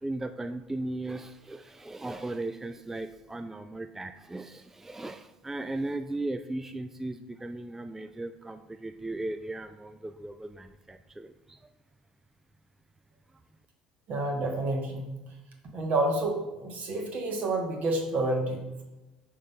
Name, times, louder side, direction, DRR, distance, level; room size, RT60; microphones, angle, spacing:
voice 1, 0.0-11.6, right 2 dB, 10° right, 8 dB, 0.3 m, -37 dB
voice 2, 14.1-15.0 15.7-18.8, right 2 dB, 45° right, 1 dB, 1.3 m, -29 dB
6.4 x 3.9 x 4.4 m, 1.0 s
figure-of-eight pair, 60°, 3 cm